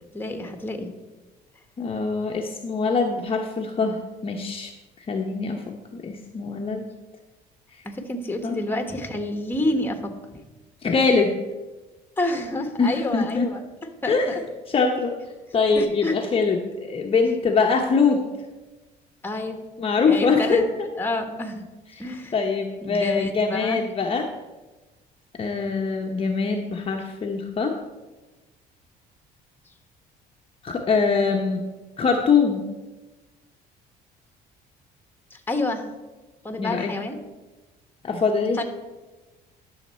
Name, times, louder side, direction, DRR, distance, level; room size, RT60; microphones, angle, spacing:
voice 1, 0.1-0.9 7.8-10.1 12.2-14.4 15.8-16.2 19.2-19.6 20.0-20.6 21.0-21.6 22.0-22.4 22.8-23.8 35.3-35.8 36.4-37.2 38.6-38.7, left 2 dB, 10° left, 6 dB, 1.2 m, -28 dB
voice 2, 1.8-4.7 5.0-5.6 5.9-6.8 8.4-8.6 10.8-11.3 12.8-13.5 14.1-14.4 14.7-15.1 15.5-18.2 19.8-20.9 22.3-24.3 25.4-27.7 30.6-31.6 32.0-32.6 36.6-36.9 38.0-38.6, left 4 dB, 35° left, 2 dB, 0.8 m, -23 dB
11.5 x 6.5 x 4.3 m, 1.2 s
cardioid pair, 110°, 17 cm